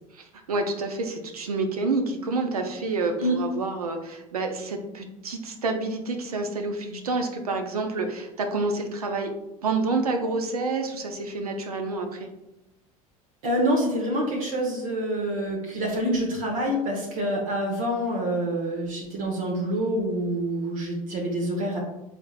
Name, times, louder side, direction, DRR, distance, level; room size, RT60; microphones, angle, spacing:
voice 1, 0.1-9.3 9.6-12.3, right 3 dB, 90° right, 5 dB, 0.5 m, -28 dB
voice 2, 13.4-21.8, right 1 dB, 70° right, -1 dB, 0.9 m, -26 dB
4.5 x 3.4 x 2.3 m, 0.93 s
hypercardioid pair, 80°, 19 cm